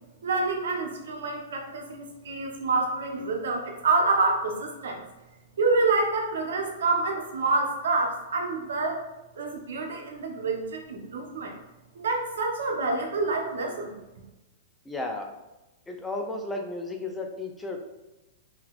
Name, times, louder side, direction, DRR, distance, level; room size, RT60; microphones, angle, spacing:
voice 1, 0.2-5.0 5.6-9.0 9.3-11.6 11.9-14.0, right 3 dB, 85° right, 1 dB, 0.8 m, -27 dB
voice 2, 14.9-15.3 15.9-17.8, left 2 dB, 10° left, 2 dB, 0.4 m, -33 dB
3.9 x 2.8 x 2.3 m, 1.0 s
hypercardioid pair, 145°, 0 cm